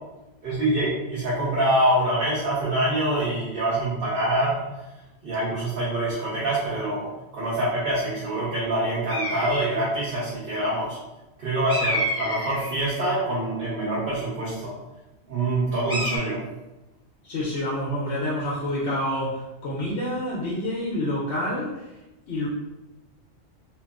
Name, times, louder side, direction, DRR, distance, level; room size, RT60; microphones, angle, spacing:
voice 1, 0.4-4.6 5.2-11.0 11.4-14.7 15.3-16.4, right 1 dB, 55° right, -9 dB, 0.9 m, -25 dB
sound 1, 9.1-9.9 11.7-13.2 15.9-16.2, equal, 5° right, 0.5 m, -29 dB
voice 2, 17.2-22.0 22.3-22.5, left 1 dB, 65° left, -6 dB, 0.9 m, -28 dB
2.9 x 2.4 x 2.3 m, 1.0 s
omnidirectional pair, 1.3 m